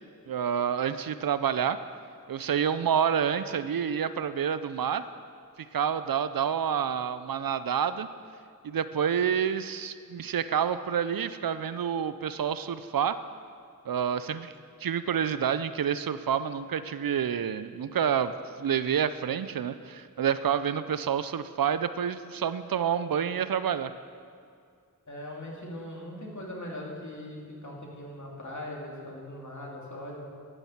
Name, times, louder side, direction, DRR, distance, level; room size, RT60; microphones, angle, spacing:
voice 1, 0.3-1.8 2.3-5.0 5.7-8.1 8.6-13.2 13.9-14.5 14.8-18.3 18.6-23.9, right 8 dB, 70° right, 13 dB, 0.5 m, -28 dB
voice 2, 25.1-30.2, left 1 dB, 55° left, -2 dB, 2.7 m, -40 dB
11.5 x 7.2 x 7.2 m, 2.3 s
cardioid pair, 40°, 36 cm